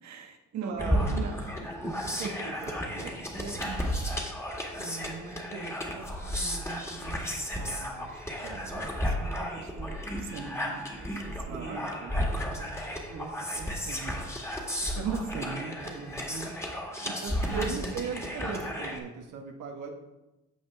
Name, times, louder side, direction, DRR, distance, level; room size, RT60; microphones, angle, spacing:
voice 1, 0.0-1.9 2.9-3.6 4.8-8.2 9.0-11.9 12.5-14.3 14.8-16.5 17.0-17.9, right 5 dB, 65° right, 3 dB, 1.3 m, -41 dB
voice 2, 0.6-1.4 2.0-3.1 3.6-4.0 8.4-8.9 11.5-12.2 17.5-19.9, right 5 dB, 85° right, 1 dB, 1.2 m, -38 dB
sound 1, 0.8-19.0, equal, 10° left, 1.8 m, -33 dB
15.0 x 5.1 x 3.4 m, 1.0 s
cardioid pair, 90°, 30 cm